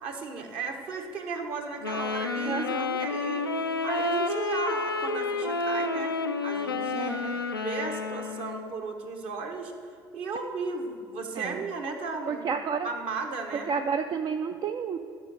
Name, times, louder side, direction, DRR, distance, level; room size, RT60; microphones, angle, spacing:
voice 1, 0.0-3.5 3.8-9.7 10.1-12.6 12.8-13.7, right 4 dB, 50° right, 4 dB, 1.2 m, -35 dB
Wind instrument woodwind instrument, 1.8-8.7, left 3 dB, 85° left, 0.4 m, -30 dB
voice 2, 2.4-3.0 6.9-7.4 11.4-11.6 12.3-12.9 13.7-15.0, right 6 dB, 35° right, 7 dB, 0.4 m, -31 dB
12.0 x 5.2 x 6.4 m, 2.5 s
figure-of-eight pair, 55°, 12 cm